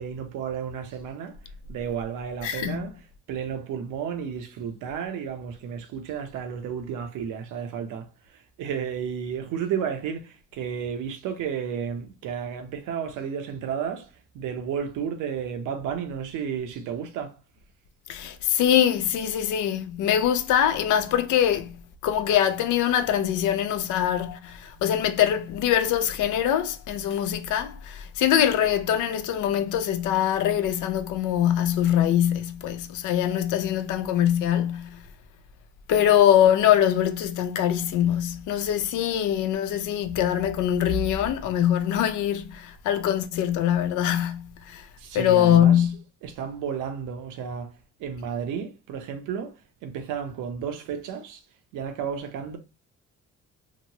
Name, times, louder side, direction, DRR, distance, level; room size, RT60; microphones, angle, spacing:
voice 1, 0.0-1.4 1.7-2.9 3.3-17.3 45.0-45.9 46.2-47.7 48.0-51.4 51.7-52.6, right 7 dB, 90° right, 0.7 m, -32 dB
voice 2, 2.4-2.8 18.1-21.7 22.0-35.0 35.9-44.9 45.1-46.0, left 10 dB, 80° left, 0.5 m, -23 dB
2.9 x 2.2 x 2.9 m
cardioid pair, 90°, 30 cm